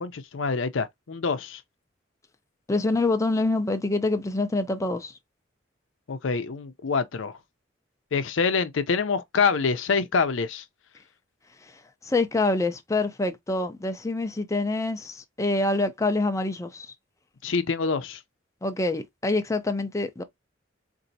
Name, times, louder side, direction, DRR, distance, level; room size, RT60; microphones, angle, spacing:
voice 1, 0.0-1.6 6.1-7.3 8.1-10.6 17.4-18.2, left 5 dB, 85° left, 0.6 m, -26 dB
voice 2, 2.7-5.1 11.6-11.7 12.0-16.9 18.6-20.2, left 2 dB, 15° left, 0.5 m, -26 dB
4.1 x 2.6 x 2.6 m
head